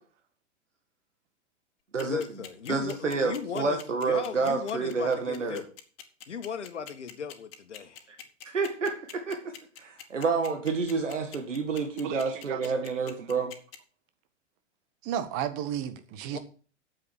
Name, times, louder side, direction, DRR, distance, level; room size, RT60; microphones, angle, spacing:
voice 1, 2.0-5.7 6.3-8.0 16.3-16.4, left 7 dB, 70° left, 9 dB, 1.8 m, -36 dB
sound 1, 2.0-13.8, left 9 dB, 50° left, 1.9 m, -45 dB
voice 2, 2.7-5.6 8.1-8.2 8.5-13.5, right 4 dB, 75° right, 5 dB, 1.9 m, -29 dB
voice 3, 12.0-12.9 15.0-16.4, right 10 dB, 35° right, 10 dB, 1.6 m, -34 dB
9.3 x 7.7 x 6.5 m, 0.39 s
figure-of-eight pair, 100°, 37 cm